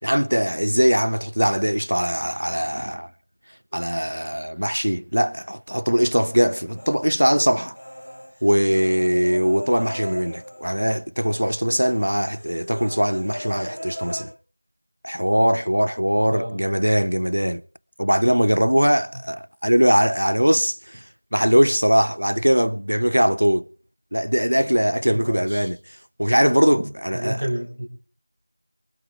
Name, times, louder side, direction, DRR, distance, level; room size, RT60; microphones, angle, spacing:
voice 1, 0.0-3.1 3.7-7.8 8.4-14.3 15.0-17.6 18.0-21.0 21.3-23.7 24.1-25.8 26.2-27.4, equal, 50° right, 0.6 m, -21 dB
Human voice, 6.2-7.4 7.7-11.0 11.2-11.5 11.8-14.2, equal, 45° left, 7.2 m, -38 dB
voice 2, 16.3-16.6 25.1-25.7 27.1-27.9, right 1 dB, 15° right, 2.2 m, -29 dB
23.0 x 12.5 x 3.5 m
figure-of-eight pair, 180°, 0 cm